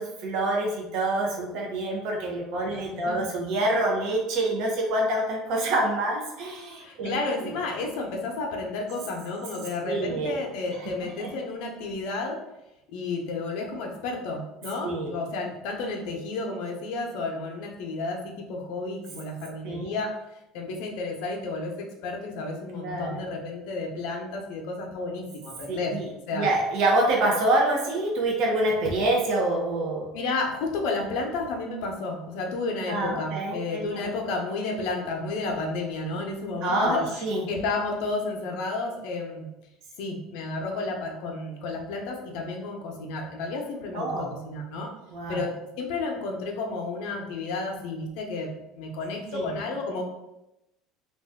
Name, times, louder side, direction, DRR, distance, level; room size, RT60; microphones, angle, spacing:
voice 1, 0.0-7.2 9.9-10.4 10.8-11.3 14.8-15.1 19.6-20.0 22.8-23.3 25.7-26.1 26.3-30.1 32.9-34.1 36.6-37.5 43.9-44.3 45.1-45.5 49.3-49.6, right 1 dB, 60° right, -1 dB, 0.6 m, -26 dB
voice 2, 2.7-3.3 6.8-12.4 12.9-20.2 20.5-26.0 26.3-26.5 30.1-39.5 40.0-44.9 45.3-50.0, left 3 dB, 70° left, 1 dB, 0.6 m, -32 dB
2.6 x 2.2 x 3.4 m, 0.91 s
cardioid pair, 155°, 0 cm